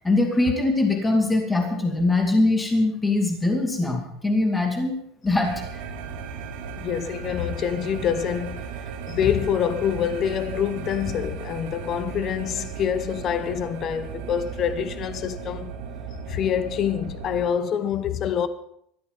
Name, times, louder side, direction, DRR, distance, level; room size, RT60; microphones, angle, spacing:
voice 1, 0.0-4.9 5.2-5.8, left 2 dB, 10° left, 2.3 m, -22 dB
sound 1, 5.4-17.5, right 7 dB, 85° right, 2.6 m, -36 dB
voice 2, 6.8-8.7 9.1-15.7 16.3-18.5, left 9 dB, 30° left, 0.8 m, -26 dB
20.0 x 13.5 x 4.0 m
cardioid pair, 170°, 0 cm